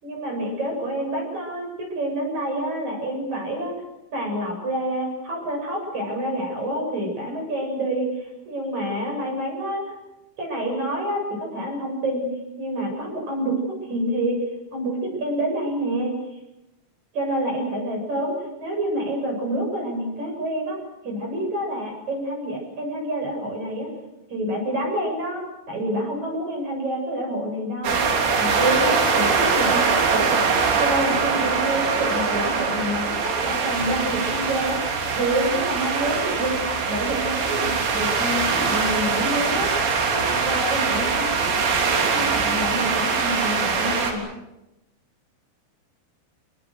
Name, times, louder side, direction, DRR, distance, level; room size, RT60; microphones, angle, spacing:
voice 1, 0.0-3.7 4.1-9.9 10.4-14.4 14.7-16.1 17.1-18.3 18.6-20.8 21.0-23.9 24.3-30.4 30.8-34.9 35.2-36.6 36.9-39.7 40.1-44.2, right 1 dB, 35° right, 1 dB, 8.9 m, -28 dB
sound 1, 27.8-44.1, right 5 dB, 70° right, 5.6 m, -23 dB
28.5 x 23.0 x 6.5 m, 0.93 s
omnidirectional pair, 5.5 m